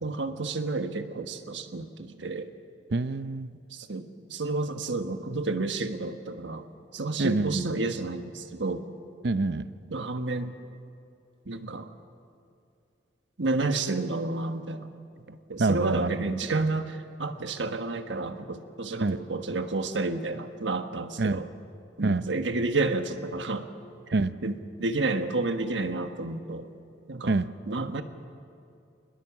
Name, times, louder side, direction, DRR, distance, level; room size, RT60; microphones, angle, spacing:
voice 1, 0.0-2.5 3.7-6.7 6.9-8.8 9.9-10.5 11.5-11.9 13.4-14.9 15.3-21.5 22.0-23.7 24.4-26.7 27.1-27.3 27.7-28.0, right 3 dB, 85° right, 7 dB, 1.4 m, -30 dB
voice 2, 2.9-3.5 7.2-7.7 9.2-9.7 15.6-16.3 19.0-19.2 21.2-21.4 22.0-22.2 24.1-24.3 27.3-27.5, right 3 dB, 65° right, 13 dB, 0.6 m, -26 dB
23.0 x 20.5 x 7.3 m, 2.5 s
head